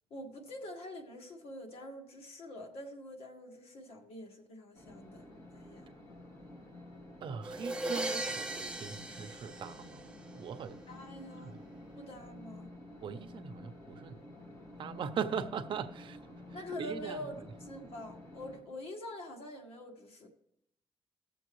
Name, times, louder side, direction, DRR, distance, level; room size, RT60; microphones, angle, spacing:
voice 1, 0.1-5.2 5.5-5.9 10.9-11.5 12.0-12.7 16.5-20.3, left 1 dB, 80° left, 1.7 m, -45 dB
sound 1, 4.7-18.6, left 1 dB, 30° left, 1.9 m, -51 dB
voice 2, 7.2-10.1 10.3-10.8 11.4-11.6 13.0-14.3 14.8-16.2 16.8-17.2, right 7 dB, 60° right, 0.6 m, -40 dB
sound 2, 7.4-10.4, right 1 dB, 10° right, 0.7 m, -38 dB
18.5 x 7.0 x 3.1 m
wide cardioid pair, 155°, 10 cm